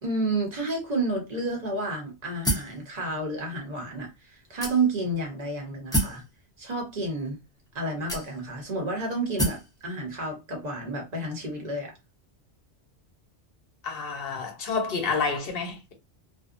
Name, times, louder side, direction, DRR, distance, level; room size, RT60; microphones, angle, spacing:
voice 1, 0.0-6.2 6.6-7.4 7.7-11.9, right 2 dB, 40° right, 1.0 m, -30 dB
sound 1, 2.4-2.8 3.6-3.7 4.6-5.1 5.9-6.2 7.2-7.3 8.1-8.6 9.4-9.7, right 1 dB, 5° left, 0.6 m, -27 dB
voice 2, 13.8-15.9, left 4 dB, 60° left, 0.9 m, -29 dB
2.6 x 2.1 x 2.4 m
omnidirectional pair, 1.1 m